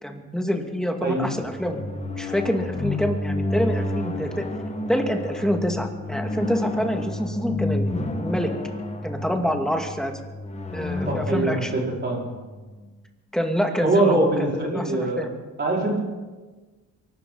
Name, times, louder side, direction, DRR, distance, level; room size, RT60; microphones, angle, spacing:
voice 1, 0.0-1.8 2.2-4.4 4.9-7.9 8.2-8.5 9.0-10.1 10.7-11.7 13.3-15.3, equal, ahead, 3 dB, 2.1 m, -26 dB
sound 1, 1.3-12.9, left 2 dB, 20° left, 1.7 m, -30 dB
voice 2, 11.1-12.2 13.8-15.2 15.6-16.0, right 2 dB, 35° right, -3 dB, 5.2 m, -23 dB
23.0 x 12.5 x 4.1 m, 1.3 s
cardioid pair, 90°, 30 cm